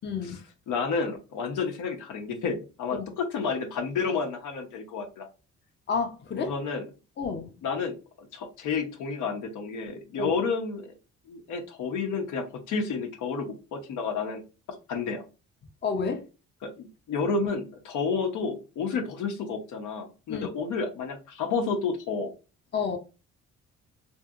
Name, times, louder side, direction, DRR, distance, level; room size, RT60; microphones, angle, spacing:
voice 1, 0.0-0.4 2.9-3.1 5.9-6.5 7.2-7.5 10.2-10.3 15.8-16.2 20.3-20.5 22.7-23.0, left 5 dB, 35° left, 0.6 m, -30 dB
voice 2, 0.7-5.3 6.3-6.9 7.6-10.9 11.3-14.4 14.7-15.2 16.6-22.3, left 5 dB, 80° left, 0.8 m, -31 dB
2.8 x 2.7 x 2.4 m
cardioid pair, 90°, 30 cm